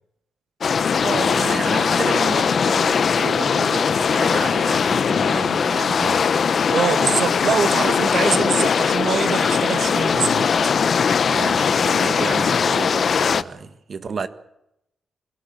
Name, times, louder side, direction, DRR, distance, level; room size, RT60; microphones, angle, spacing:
sound 1, 0.6-13.4, left 6 dB, 50° left, 0.8 m, -20 dB
voice 1, 1.0-6.4 11.3-14.3, right 5 dB, 45° right, 1.6 m, -30 dB
voice 2, 6.7-10.5, right 7 dB, 65° right, 1.0 m, -24 dB
25.0 x 17.5 x 7.6 m
wide cardioid pair, 140°, 0 cm